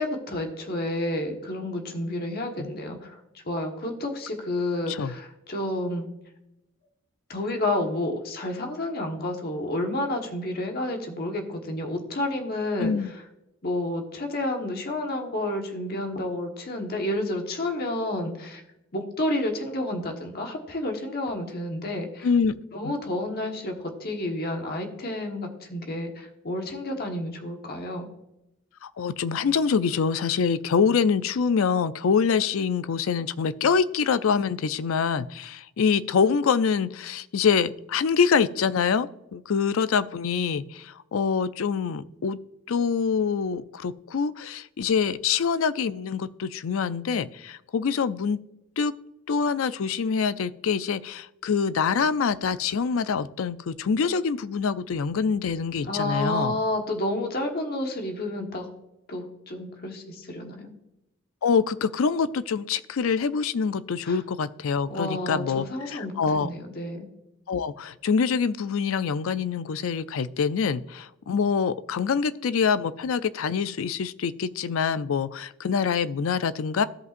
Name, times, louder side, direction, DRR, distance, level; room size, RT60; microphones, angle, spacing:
voice 1, 0.0-3.2 3.4-6.0 7.3-12.9 13.6-18.6 18.9-22.3 22.7-28.1 55.8-58.7 59.1-60.7 64.1-64.2 64.9-67.1, left 1 dB, 45° left, 3 dB, 1.3 m, -30 dB
voice 2, 22.2-22.5 22.8-22.9 28.8-42.4 42.7-48.4 48.8-48.9 49.3-56.6 61.4-66.5 67.5-76.8, left 6 dB, 75° left, 15 dB, 0.4 m, -25 dB
16.0 x 5.4 x 2.5 m, 0.89 s
head